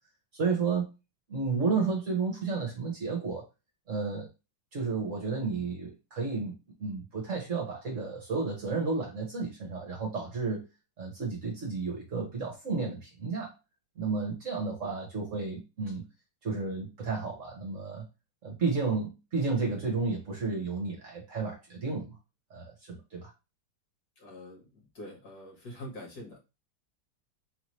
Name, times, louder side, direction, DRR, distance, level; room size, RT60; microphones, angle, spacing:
voice 1, 0.4-0.9 1.3-3.4 3.9-4.3 4.7-10.6 11.0-13.5 14.0-16.0 16.4-18.0 18.4-22.2 22.5-23.3, right 4 dB, 50° right, -1 dB, 1.2 m, -32 dB
voice 2, 24.2-26.4, left 1 dB, 55° left, -1 dB, 1.9 m, -45 dB
4.1 x 2.8 x 3.1 m, 0.26 s
omnidirectional pair, 2.0 m